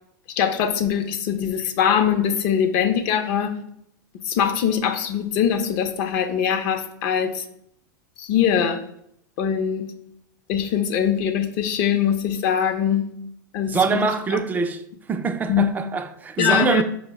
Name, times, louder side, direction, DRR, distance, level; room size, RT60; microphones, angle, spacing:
voice 1, 0.4-3.6 4.2-7.4 8.2-8.8 9.4-9.9 10.5-13.1 13.5-14.4 15.5-15.7 16.4-16.8, left 8 dB, 50° left, 0.5 m, -22 dB
voice 2, 13.7-14.8 15.1-16.8, right 5 dB, 15° right, 0.3 m, -24 dB
4.6 x 2.0 x 4.5 m
hypercardioid pair, 110°, 11 cm